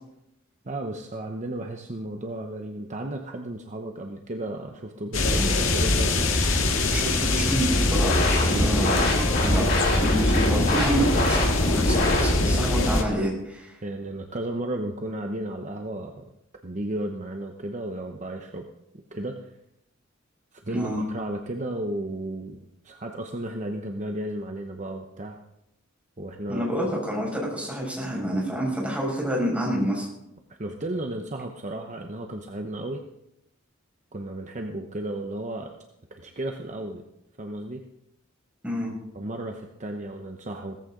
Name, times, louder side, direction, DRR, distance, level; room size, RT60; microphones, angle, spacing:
voice 1, 0.6-6.4 8.4-8.7 12.6-13.1 13.8-16.2 16.6-18.7 19.1-19.5 20.5-22.6 22.8-25.4 26.2-26.7 30.6-33.1 34.1-35.7 36.1-37.0 37.4-37.9 39.1-40.8, right 1 dB, 40° right, 3 dB, 1.0 m, -34 dB
sound 1, 5.1-13.0, left 2 dB, 75° left, 1.9 m, -23 dB
voice 2, 6.9-9.0 9.4-13.7 20.7-21.0 26.5-30.1 38.6-38.9, equal, 5° right, -3 dB, 5.8 m, -28 dB
sound 2, 7.7-12.7, left 1 dB, 55° left, 6.1 m, -27 dB
17.0 x 14.5 x 3.9 m, 0.84 s
head